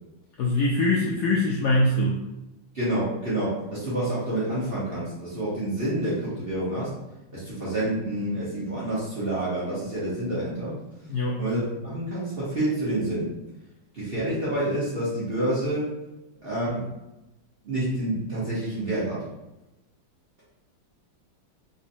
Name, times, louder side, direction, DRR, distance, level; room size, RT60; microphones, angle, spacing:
voice 1, 0.4-2.2 11.1-11.4, left 1 dB, 75° left, -3 dB, 0.9 m, -23 dB
voice 2, 2.7-6.9 7.3-10.7 11.4-13.3 13.9-16.0 16.4-16.9 17.6-19.2, right 1 dB, 35° right, -9 dB, 1.0 m, -28 dB
4.0 x 2.9 x 2.6 m, 0.96 s
omnidirectional pair, 2.2 m